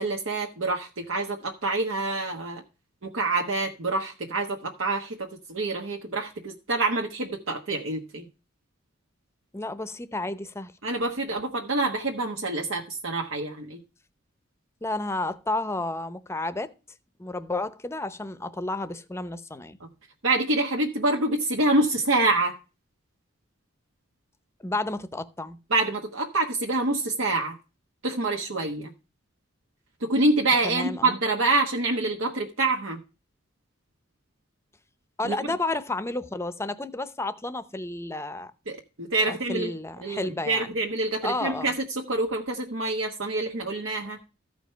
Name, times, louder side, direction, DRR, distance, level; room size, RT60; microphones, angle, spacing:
voice 1, 0.0-2.6 3.0-8.3 10.8-13.8 20.2-22.6 25.7-27.6 28.0-28.9 30.0-33.0 35.2-35.4 38.7-39.7 40.0-44.2, right 2 dB, 80° right, 1.2 m, -26 dB
voice 2, 9.5-10.7 14.8-16.7 17.2-19.8 24.6-25.6 30.6-31.2 35.2-38.5 39.3-40.7 41.2-41.7, left 2 dB, 15° left, 0.7 m, -31 dB
14.0 x 5.1 x 5.6 m
head